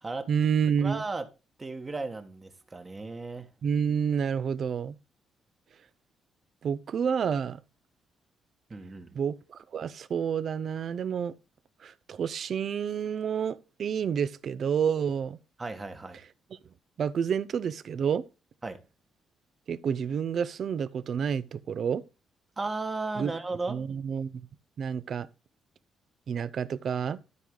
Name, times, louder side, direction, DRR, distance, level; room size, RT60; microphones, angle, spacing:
voice 1, 0.3-1.0 3.6-4.9 6.6-7.6 9.1-11.3 11.8-15.4 17.0-18.2 19.7-22.0 23.2-23.3 23.7-24.5 24.8-25.3 26.3-27.2, right 7 dB, 55° right, 0.6 m, -29 dB
voice 2, 0.8-1.2 1.6-3.4 8.7-9.2 15.6-16.2 18.6-18.8 22.6-23.7, right 3 dB, 25° right, 1.4 m, -35 dB
12.5 x 4.8 x 3.8 m
cardioid pair, 90°, 0 cm